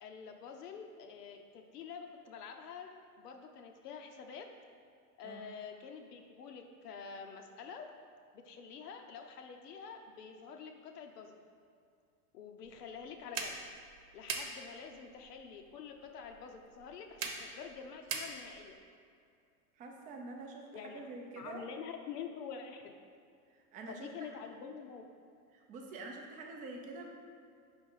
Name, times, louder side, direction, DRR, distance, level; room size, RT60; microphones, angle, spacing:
voice 1, 0.0-4.5 5.2-7.9 8.3-11.4 12.3-13.6 14.1-18.8 20.7-21.1 21.4-22.9 23.9-25.0, left 6 dB, 90° left, 4 dB, 0.9 m, -47 dB
sound 1, 12.6-18.8, right 5 dB, 55° right, 0.9 m, -44 dB
voice 2, 19.8-21.6 23.7-24.3 25.5-27.1, right 3 dB, 20° right, 1 dB, 0.4 m, -46 dB
5.2 x 3.5 x 5.4 m, 2.4 s
supercardioid pair, 135°, 46 cm